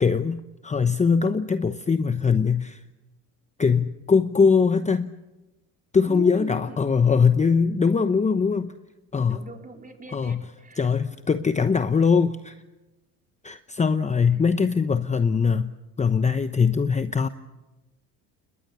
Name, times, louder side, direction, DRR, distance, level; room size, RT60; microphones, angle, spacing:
voice 1, 0.0-2.8 3.6-5.1 5.9-8.7 9.1-9.4 10.1-10.4 10.8-12.6 13.4-15.7 16.0-17.3, left 5 dB, 20° left, 11 dB, 0.9 m, -21 dB
voice 2, 6.0-6.8 8.5-8.8 9.3-10.9, right 3 dB, 20° right, 3 dB, 4.3 m, -40 dB
29.0 x 21.0 x 7.1 m, 1.1 s
supercardioid pair, 100°, 39 cm